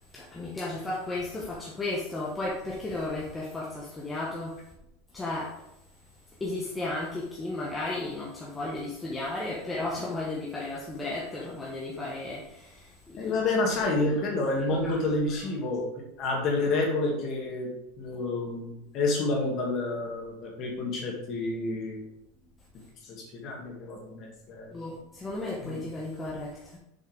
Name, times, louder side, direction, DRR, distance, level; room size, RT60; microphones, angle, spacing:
voice 1, 0.1-4.5 5.1-5.6 6.4-13.3 13.7-14.0 14.6-15.0 24.7-26.8, left 2 dB, 10° left, -5 dB, 1.0 m, -34 dB
voice 2, 13.2-17.7 18.0-22.0 23.0-24.8 25.6-25.8, left 2 dB, 30° left, -1 dB, 1.9 m, -29 dB
6.8 x 5.6 x 5.0 m, 0.84 s
supercardioid pair, 180°, 0 cm